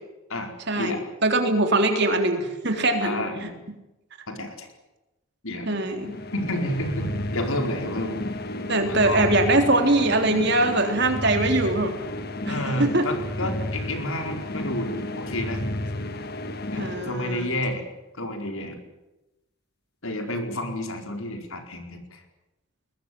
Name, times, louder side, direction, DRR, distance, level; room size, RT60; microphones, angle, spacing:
voice 1, 0.3-1.0 3.0-3.6 4.3-4.7 5.4-5.8 6.3-8.2 8.9-9.3 12.5-15.6 16.7-17.8 18.2-18.8 20.0-22.2, left 1 dB, 70° left, 5 dB, 4.8 m, -30 dB
voice 2, 1.2-3.5 5.7-6.1 8.7-11.9 12.5-13.1 16.8-17.5, right 2 dB, 50° right, 5 dB, 3.7 m, -22 dB
sound 1, 5.9-17.8, left 1 dB, 45° left, 1.7 m, -32 dB
22.0 x 20.5 x 9.5 m, 0.98 s
head